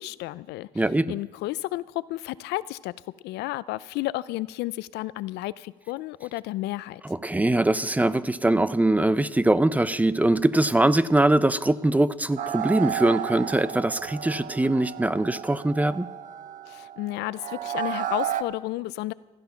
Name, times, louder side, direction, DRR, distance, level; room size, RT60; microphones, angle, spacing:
voice 1, 0.0-2.9 3.2-7.0 16.7-19.1, left 17 dB, 85° left, 18 dB, 0.5 m, -32 dB
voice 2, 0.8-1.1 7.1-16.1, right 2 dB, 10° right, 16 dB, 0.5 m, -22 dB
sound 1, 12.4-18.4, right 10 dB, 50° right, 0.8 m, -33 dB
16.5 x 12.5 x 5.7 m, 1.2 s
cardioid pair, 110°, 17 cm